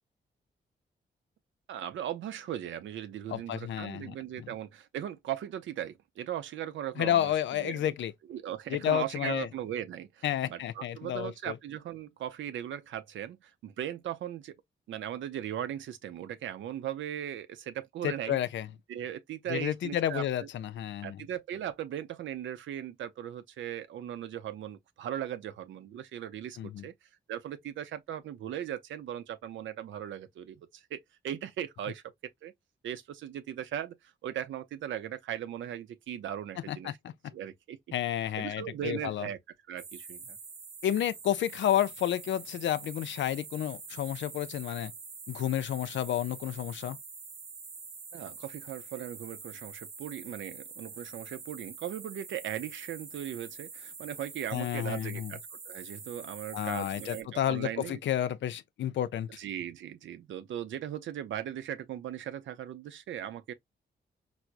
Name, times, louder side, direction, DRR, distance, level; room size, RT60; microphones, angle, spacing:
voice 1, 1.7-7.9 8.3-14.5 14.9-18.4 18.9-20.5 21.0-26.9 27.3-32.0 32.4-32.5 32.8-36.9 37.3-37.8 38.4-39.4 39.7-40.4 48.1-58.0 59.4-63.5, right 10 dB, 85° right, 0.5 m, -38 dB
voice 2, 3.3-4.5 7.0-8.1 8.7-9.5 10.2-11.5 18.0-18.7 19.5-21.2 26.6-26.8 36.7-37.1 37.9-39.3 40.8-44.9 45.3-47.0 54.5-55.3 56.5-59.3, left 11 dB, 80° left, 0.4 m, -31 dB
sound 1, 39.8-57.2, right 5 dB, 55° right, 0.8 m, -46 dB
4.6 x 2.0 x 2.4 m
cardioid pair, 65°, 19 cm